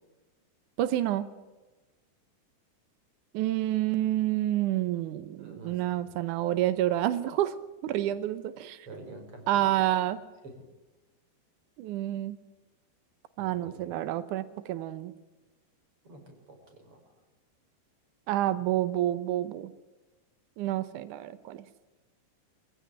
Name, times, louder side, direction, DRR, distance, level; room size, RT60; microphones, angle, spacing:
voice 1, 0.8-1.3 3.3-7.6 7.8-8.9 9.5-10.2 11.8-12.4 13.4-15.1 18.3-19.7 20.6-21.7, right 13 dB, 85° right, 14 dB, 1.8 m, -28 dB
voice 2, 5.4-6.2 8.9-9.8 10.4-10.5 13.4-13.9 16.0-17.1, right 2 dB, 30° right, 5 dB, 5.4 m, -48 dB
23.5 x 15.5 x 9.7 m, 1.2 s
omnidirectional pair, 4.8 m